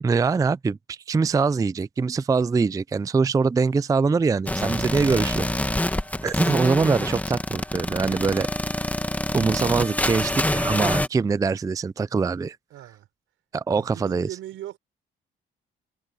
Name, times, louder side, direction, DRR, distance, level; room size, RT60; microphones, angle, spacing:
voice 1, 0.0-5.5 6.2-8.5 9.3-12.6 13.5-14.3, right 4 dB, 15° right, 0.4 m, -23 dB
sound 1, 4.5-11.1, left 1 dB, 5° left, 1.7 m, -26 dB
voice 2, 12.7-13.1 13.7-14.8, right 13 dB, 85° right, 5.3 m, -39 dB
cardioid pair, 90°, 20 cm